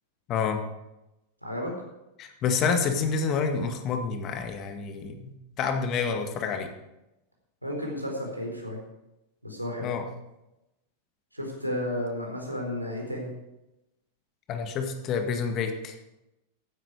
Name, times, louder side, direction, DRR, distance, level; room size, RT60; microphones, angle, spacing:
voice 1, 0.3-0.6 2.2-6.7 9.8-10.0 14.5-16.0, left 5 dB, 35° left, 6 dB, 1.9 m, -28 dB
voice 2, 7.6-8.8 9.4-9.9 11.3-13.3, left 1 dB, 90° right, -1 dB, 4.2 m, -32 dB
15.0 x 11.0 x 4.9 m, 0.92 s
figure-of-eight pair, 90°, 0 cm